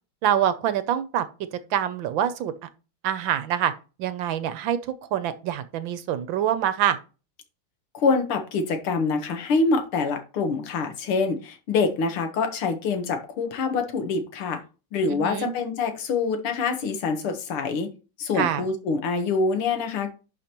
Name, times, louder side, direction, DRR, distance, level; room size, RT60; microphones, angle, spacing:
voice 1, 0.2-1.3 1.7-2.5 3.0-3.7 4.0-7.0 15.1-15.5 18.4-18.6, right 10 dB, 70° right, 1.3 m, -25 dB
voice 2, 7.9-14.6 14.9-17.9 18.2-20.2, left 4 dB, 85° left, 2.2 m, -25 dB
11.0 x 5.1 x 3.0 m
omnidirectional pair, 2.3 m